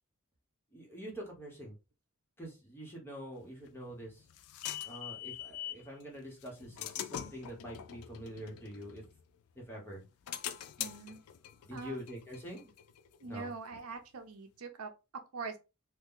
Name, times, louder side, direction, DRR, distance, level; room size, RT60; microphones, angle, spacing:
voice 1, 0.7-1.8 2.4-4.2 4.8-9.0 9.5-10.0 11.6-12.7 13.2-13.5, equal, 10° left, 1.1 m, -45 dB
sound 1, 3.7-5.9 6.4-9.5 9.9-13.4, left 11 dB, 70° left, 0.4 m, -44 dB
voice 2, 10.8-11.2 11.7-12.1 13.2-15.6, right 4 dB, 70° right, 0.6 m, -43 dB
2.8 x 2.3 x 3.7 m
head